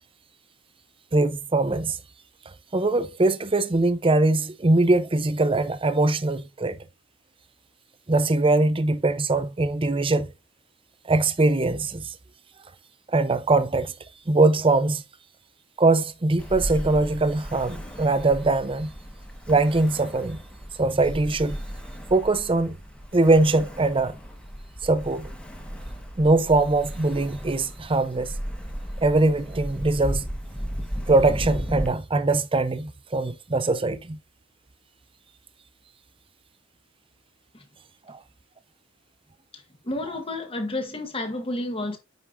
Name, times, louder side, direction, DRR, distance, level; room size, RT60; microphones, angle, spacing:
voice 1, 1.1-2.0 2.7-6.8 8.1-10.3 11.1-12.2 13.1-13.9 14.3-15.0 15.8-18.9 19.5-20.4 20.8-21.6 22.1-22.8 23.1-24.2 24.8-25.3 26.2-28.3 29.0-30.3 31.1-34.2 38.1-38.2, right 2 dB, 25° right, 0.6 m, -22 dB
Ocean, 16.4-31.9, equal, 5° left, 1.5 m, -35 dB
voice 2, 39.5-42.0, left 2 dB, 30° left, 1.7 m, -31 dB
9.4 x 5.4 x 2.6 m
head